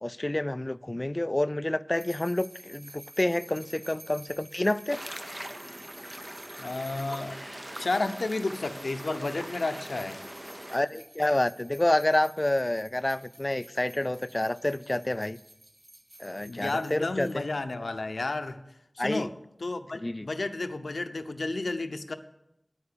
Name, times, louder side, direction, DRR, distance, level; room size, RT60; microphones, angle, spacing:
voice 1, 0.0-5.0 10.7-15.4 16.2-17.5 19.0-19.3 19.9-20.3, left 1 dB, 30° left, 0.4 m, -28 dB
sound 1, 1.9-17.3, right 1 dB, 45° right, 2.5 m, -52 dB
sound 2, 4.9-10.8, right 1 dB, 25° right, 0.7 m, -41 dB
voice 2, 6.6-7.4 7.8-10.2 16.4-18.6 19.0-19.3 19.6-22.1, left 2 dB, 80° left, 0.8 m, -32 dB
9.7 x 9.7 x 6.8 m
wide cardioid pair, 45°, 0 cm